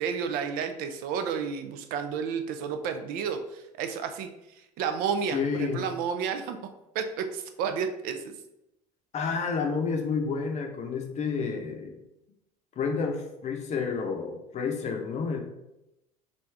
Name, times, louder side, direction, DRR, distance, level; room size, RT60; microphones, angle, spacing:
voice 1, 0.0-4.3 4.8-6.6 6.9-8.3, right 6 dB, 50° right, 8 dB, 0.4 m, -31 dB
voice 2, 5.3-5.8 9.1-12.0 12.8-15.4, left 5 dB, 35° left, 3 dB, 0.7 m, -30 dB
3.2 x 2.6 x 3.3 m, 0.88 s
figure-of-eight pair, 65°, 19 cm